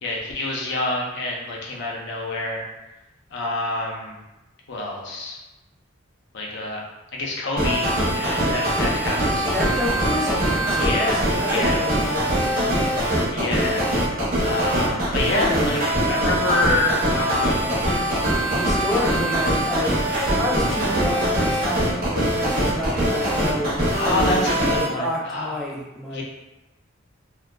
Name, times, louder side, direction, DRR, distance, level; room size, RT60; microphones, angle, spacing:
voice 1, 0.0-2.6 3.3-4.2 4.7-5.4 6.3-6.8 7.1-9.5 10.8-11.2 11.5-11.9 13.3-13.8 14.4-17.9 22.4-22.8 23.9-25.6 26.1-26.2, left 2 dB, 60° left, -2 dB, 0.6 m, -27 dB
sound 1, 7.6-24.9, right 1 dB, 50° right, 0.7 m, -22 dB
voice 2, 9.5-13.0 18.5-20.0 20.4-23.8 24.6-26.2, left 1 dB, ahead, -5 dB, 0.4 m, -29 dB
2.5 x 2.2 x 2.2 m, 1.0 s
head